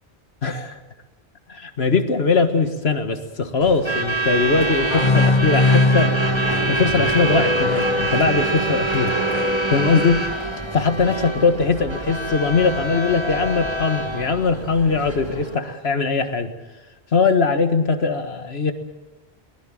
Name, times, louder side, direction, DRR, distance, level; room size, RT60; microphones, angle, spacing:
voice 1, 0.4-0.8 1.5-6.3 6.7-9.1 9.7-10.2 10.7-16.5 17.1-18.7, left 4 dB, 75° left, 8 dB, 1.9 m, -20 dB
Truck / Alarm, 3.6-15.5, right 2 dB, 25° right, 1.8 m, -25 dB
sound 1, 4.4-10.0, left 2 dB, 75° right, 7.9 m, -30 dB
sound 2, 4.9-8.4, left 3 dB, 30° left, 1.7 m, -21 dB
23.0 x 20.0 x 7.7 m, 1.1 s
omnidirectional pair, 1.1 m